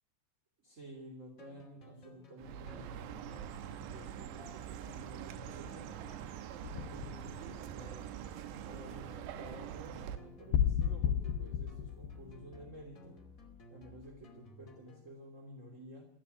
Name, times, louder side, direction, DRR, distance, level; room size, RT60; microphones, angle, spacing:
voice 1, 0.6-6.1 6.7-8.1 8.7-13.2 13.7-16.1, equal, 20° right, 0 dB, 2.9 m, -52 dB
sound 1, 1.4-15.1, left 2 dB, 25° left, 2.1 m, -57 dB
Chirp tweet, 2.4-10.2, right 10 dB, 85° right, 3.3 m, -44 dB
sound 2, 6.6-8.1 10.5-13.1, left 9 dB, 75° left, 2.9 m, -33 dB
27.5 x 10.0 x 9.4 m, 0.78 s
omnidirectional pair, 4.9 m